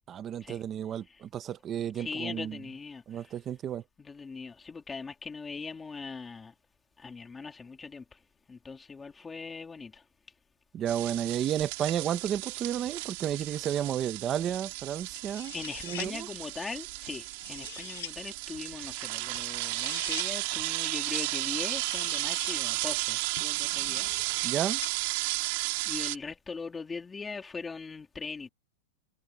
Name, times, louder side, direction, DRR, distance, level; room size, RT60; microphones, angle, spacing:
voice 1, 0.1-2.6 3.1-3.8 10.7-15.5 15.8-16.3 24.4-24.8, right 10 dB, 20° right, 1.0 m, -32 dB
voice 2, 1.9-3.4 4.0-6.5 7.0-8.2 8.5-10.0 15.5-24.1 25.9-28.5, left 4 dB, 10° left, 2.8 m, -40 dB
sound 1, 10.9-26.2, right 25 dB, 45° right, 4.9 m, -33 dB
sound 2, 15.1-16.1 17.1-18.1 19.3-20.3 21.5-22.6 23.4-24.9, left 13 dB, 65° left, 6.3 m, -44 dB
supercardioid pair, 170°, 0 cm